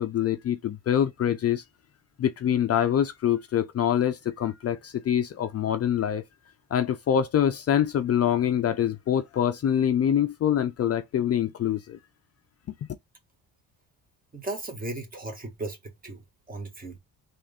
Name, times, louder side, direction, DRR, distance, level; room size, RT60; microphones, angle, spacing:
voice 1, 0.0-1.6 2.2-6.2 6.7-11.8, left 9 dB, 40° left, 0.5 m, -25 dB
voice 2, 14.3-15.8 16.0-16.2 16.5-17.0, right 2 dB, 25° right, 1.3 m, -35 dB
3.5 x 2.5 x 3.4 m
cardioid pair, 95°, 38 cm